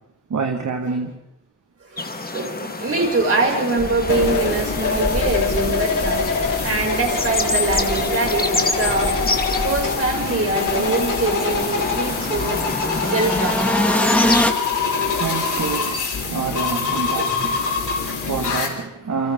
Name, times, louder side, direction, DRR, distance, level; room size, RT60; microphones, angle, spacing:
voice 1, 0.3-1.2 14.7-19.3, right 5 dB, 70° right, 1.9 m, -28 dB
voice 2, 1.8-6.3 6.6-9.2 9.6-12.6 13.1-13.6 18.1-18.2, right 3 dB, 50° right, 6.5 m, -23 dB
sound 1, 2.0-14.5, left 3 dB, 30° left, 1.7 m, -29 dB
sound 2, 3.8-14.5, equal, 5° left, 1.5 m, -27 dB
sound 3, 4.1-18.7, left 4 dB, 80° left, 4.5 m, -24 dB
29.5 x 25.5 x 3.8 m
wide cardioid pair, 95°, 30 cm